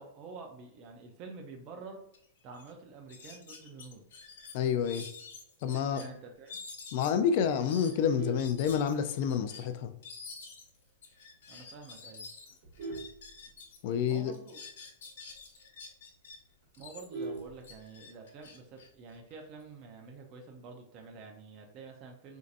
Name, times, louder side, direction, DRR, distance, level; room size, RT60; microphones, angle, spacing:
voice 1, 0.0-2.0 2.4-4.0 5.9-6.6 11.5-12.3 14.0-14.6 16.8-22.4, right 4 dB, 30° right, 3 dB, 0.5 m, -48 dB
sound 1, 2.1-2.2 2.5-2.7 3.1-6.1 6.5-13.8 14.1-16.4 16.7-19.6, left 4 dB, 70° left, 1.1 m, -48 dB
voice 2, 4.5-5.1 5.6-6.0 6.9-9.9 13.8-14.3, left 7 dB, 45° left, 8 dB, 0.4 m, -28 dB
Vehicle horn car horn honking, 7.9-9.4 9.8-10.1 10.4-10.5 10.9-11.0 11.3-11.7 12.2-14.0 14.4-14.5 14.8-14.9 15.3-15.4 15.8-15.9 16.1-18.2 19.3-19.8, right 3 dB, 50° right, 1.4 m, -42 dB
4.5 x 2.7 x 2.5 m, 0.73 s
supercardioid pair, 165°, 0 cm